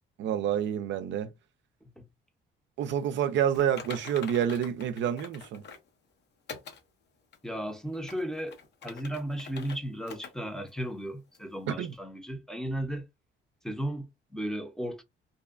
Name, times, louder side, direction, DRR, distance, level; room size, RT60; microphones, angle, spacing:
voice 1, 0.2-1.3 2.8-5.6 11.7-11.9, right 9 dB, 70° right, 0.4 m, -28 dB
Typing, 3.5-5.9 6.5-6.8 7.3-7.4 7.9-9.8 10.1-10.3 10.7-10.8 11.3-11.4, left 6 dB, 60° left, 0.7 m, -45 dB
voice 2, 7.4-8.6 8.8-13.1 13.6-15.0, right 1 dB, 5° left, 0.6 m, -35 dB
2.6 x 2.2 x 2.4 m
cardioid pair, 90°, 20 cm